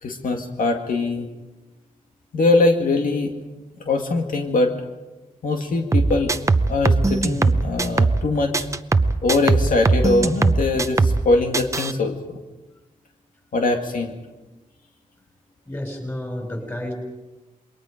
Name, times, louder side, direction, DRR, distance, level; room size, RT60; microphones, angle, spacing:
voice 1, 0.0-1.3 2.3-3.3 3.8-4.7 5.4-6.3 6.7-8.7 9.2-12.4 13.5-14.2, left 3 dB, 85° left, 3 dB, 2.1 m, -22 dB
sound 1, 5.9-8.3 8.5-11.3 11.5-11.9, right 3 dB, 20° right, 0.6 m, -19 dB
voice 2, 15.7-16.9, left 1 dB, 15° left, 2 dB, 5.4 m, -30 dB
27.5 x 22.5 x 5.1 m, 1.1 s
wide cardioid pair, 170°, 14 cm